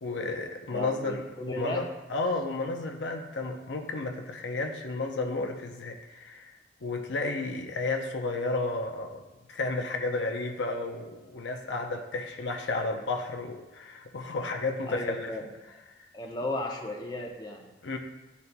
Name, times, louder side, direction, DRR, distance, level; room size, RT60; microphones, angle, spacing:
voice 1, 0.0-1.2 1.6-9.2 9.5-15.4 15.9-16.0 17.8-18.0, left 3 dB, 75° left, 4 dB, 0.6 m, -32 dB
voice 2, 0.7-1.8 14.8-15.4 16.1-17.7, left 1 dB, 20° left, 1 dB, 0.7 m, -35 dB
10.5 x 4.1 x 2.2 m, 1.1 s
head